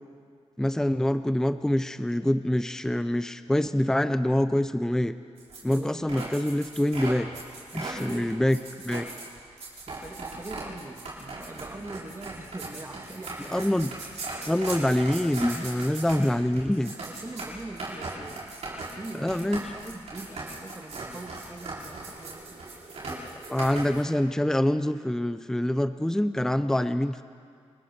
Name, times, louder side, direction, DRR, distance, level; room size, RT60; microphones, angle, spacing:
voice 1, 0.6-5.1 5.6-7.3 7.7-8.6 8.8-9.0 13.4-13.9 14.5-16.9 19.1-19.6 23.1-27.2, left 1 dB, 5° left, 11 dB, 0.6 m, -25 dB
sound 1, 5.4-24.0, right 3 dB, 80° right, 5.8 m, -38 dB
voice 2, 5.7-6.2 7.7-8.5 9.9-13.6 16.8-22.7, right 2 dB, 25° right, 3 dB, 1.8 m, -42 dB
30.0 x 20.5 x 4.4 m, 2.2 s
wide cardioid pair, 100°, 11 cm